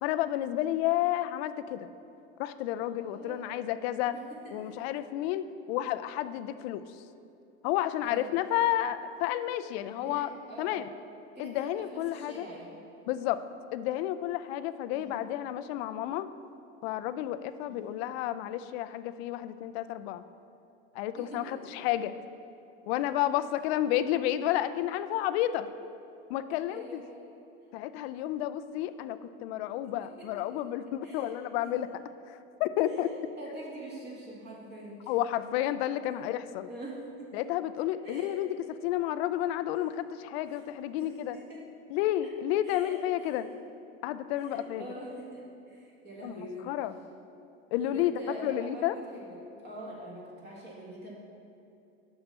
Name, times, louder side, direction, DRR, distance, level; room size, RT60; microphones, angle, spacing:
voice 1, 0.0-1.9 2.4-4.2 4.5-6.8 7.6-10.3 10.6-10.9 11.4-12.5 13.1-13.4 13.7-16.3 16.8-20.2 20.9-22.1 22.9-25.7 26.3-27.0 27.7-31.9 32.3-33.1 35.1-36.7 37.3-38.5 38.8-41.4 41.9-43.5 44.0-44.8 46.2-46.4 46.7-47.0 47.7-48.1 48.4-49.0, left 13 dB, 65° left, 12 dB, 0.5 m, -31 dB
voice 2, 3.0-3.6 4.1-4.9 8.0-8.3 9.9-10.8 11.3-12.7 14.9-15.1 17.7-17.8 21.1-21.5 23.0-23.1 26.7-27.1 29.8-30.6 31.0-31.4 31.6-31.7 32.8-35.2 35.8-35.9 36.6-37.4 38.0-38.4 41.0-41.6 42.6-43.3 44.4-46.7 47.8-51.1, right 1 dB, 30° right, -4 dB, 1.8 m, -44 dB
6.8 x 5.6 x 5.4 m, 2.8 s
supercardioid pair, 110°, 34 cm